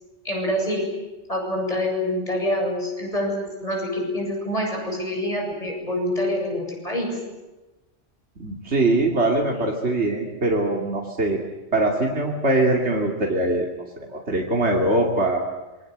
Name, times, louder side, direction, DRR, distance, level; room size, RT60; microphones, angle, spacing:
voice 1, 0.2-0.9 1.3-7.1, left 1 dB, 35° left, 0 dB, 8.1 m, -26 dB
voice 2, 8.4-11.4 11.7-13.7 14.1-15.5, right 2 dB, 80° right, 0 dB, 3.0 m, -22 dB
27.0 x 23.5 x 8.1 m, 1.1 s
omnidirectional pair, 1.1 m